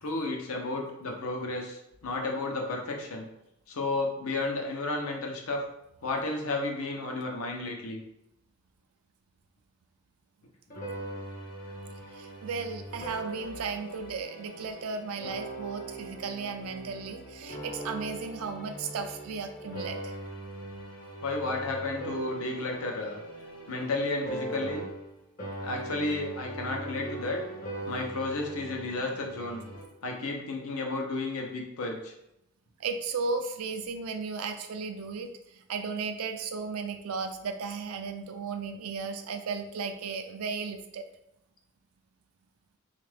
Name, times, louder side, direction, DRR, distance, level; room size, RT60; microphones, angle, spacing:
voice 1, 0.0-3.3 3.7-5.6 6.0-8.0 21.2-23.2 23.7-24.9 25.6-27.4 27.9-29.6 30.0-32.1, left 2 dB, 80° left, 2 dB, 0.7 m, -32 dB
sound 1, 10.7-25.1 25.4-29.8, right 2 dB, 40° left, 0.6 m, -40 dB
voice 2, 12.1-20.1 32.8-41.0, right 4 dB, 85° right, 6 dB, 0.4 m, -35 dB
3.6 x 2.4 x 3.3 m, 0.85 s
head